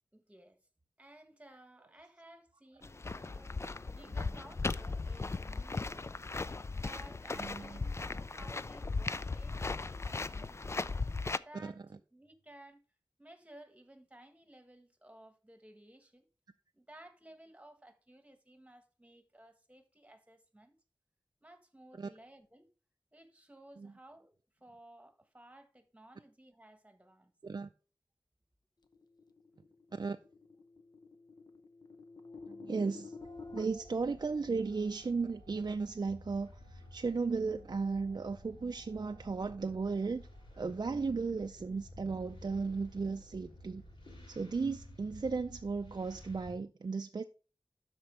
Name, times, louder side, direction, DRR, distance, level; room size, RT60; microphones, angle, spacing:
voice 1, 0.1-0.6 1.0-10.8 11.3-12.8 13.2-16.2 16.7-20.7 21.4-22.7 23.1-27.3, right 1 dB, 15° right, 1.3 m, -57 dB
sound 1, 2.8-11.4, left 3 dB, 35° left, 0.3 m, -37 dB
voice 2, 7.4-7.8 11.6-11.7 22.0-22.1 23.8-23.9 27.4-27.7 29.9-30.2 32.5-33.2 33.5-40.3 40.5-43.8 44.3-47.2, right 4 dB, 55° right, 0.4 m, -35 dB
sound 2, 28.9-33.6, left 4 dB, 55° left, 0.8 m, -50 dB
sound 3, 33.2-46.5, left 1 dB, 80° left, 3.0 m, -53 dB
12.5 x 4.4 x 3.2 m
wide cardioid pair, 75°, 8 cm